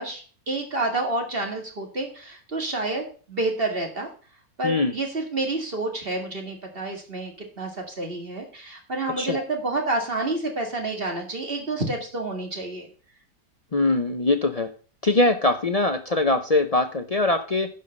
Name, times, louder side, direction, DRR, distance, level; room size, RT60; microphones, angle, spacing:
voice 1, 0.0-4.1 4.6-12.9, right 2 dB, 35° right, 3 dB, 2.2 m, -29 dB
voice 2, 13.7-14.7 15.0-17.7, left 2 dB, 55° left, 8 dB, 0.4 m, -22 dB
10.5 x 5.6 x 5.3 m, 0.40 s
omnidirectional pair, 1.8 m